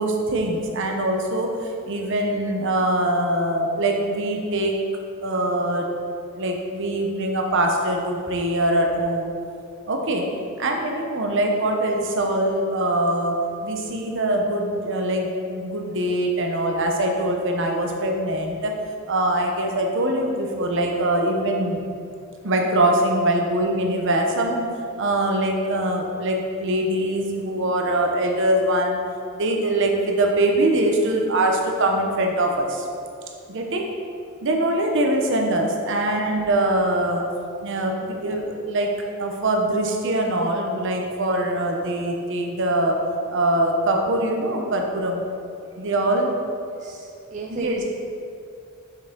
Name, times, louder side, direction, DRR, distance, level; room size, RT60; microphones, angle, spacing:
voice 1, 0.0-4.7 5.2-5.9 6.3-9.3 9.9-10.3 10.6-18.8 19.1-21.9 22.4-24.7 25.0-29.0 29.3-32.9 33.5-33.9 34.4-37.3 37.6-38.9 39.2-43.0 43.3-45.2 45.8-46.3 47.5-47.8, right 1 dB, 60° right, 2 dB, 0.9 m, -23 dB
voice 2, 35.9-36.3 46.7-47.8, right 3 dB, 35° right, 0 dB, 0.4 m, -36 dB
6.5 x 6.1 x 3.8 m, 2.5 s
head